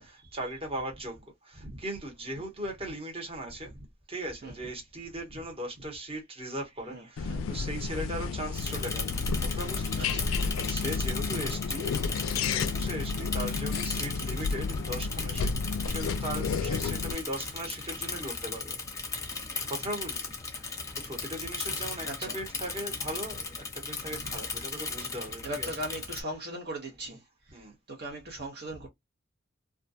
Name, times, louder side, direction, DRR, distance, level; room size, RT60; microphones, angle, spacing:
voice 1, 0.0-3.8 4.1-18.8 19.4-25.8 26.1-26.4 27.0-27.2 27.5-27.8 28.3-28.4 28.7-28.9, right 1 dB, 30° right, 1.0 m, -39 dB
sound 1, 7.2-17.1, left 4 dB, 75° left, 0.3 m, -31 dB
voice 2, 7.3-7.6 10.0-10.2 12.4-12.6 22.0-22.3 25.4-27.2 27.5-27.6 27.9-28.9, right 1 dB, 55° right, 0.7 m, -38 dB
Bicycle / Mechanisms, 8.5-26.2, left 4 dB, 15° left, 0.7 m, -37 dB
2.3 x 2.2 x 2.6 m
head